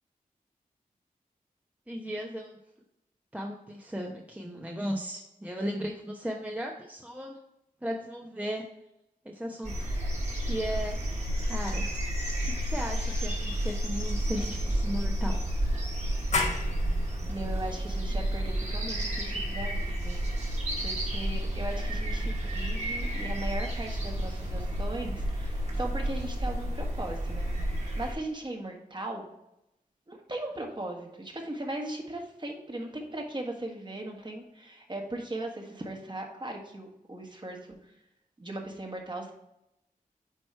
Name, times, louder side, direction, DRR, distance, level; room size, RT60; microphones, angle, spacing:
voice 1, 1.9-2.6 3.3-7.4 7.8-8.6 9.2-9.9 10.4-11.9 12.4-15.4, equal, 10° right, 0 dB, 0.8 m, -36 dB
sound 1, 9.6-28.1, equal, 50° right, 2.0 m, -31 dB
sound 2, 16.3-21.7, left 3 dB, 50° left, 1.1 m, -37 dB
voice 2, 17.3-20.2 20.8-29.3 30.1-37.8 38.4-39.3, right 1 dB, 30° right, 2 dB, 1.5 m, -38 dB
8.9 x 3.1 x 4.4 m, 0.86 s
wide cardioid pair, 65°, 15 cm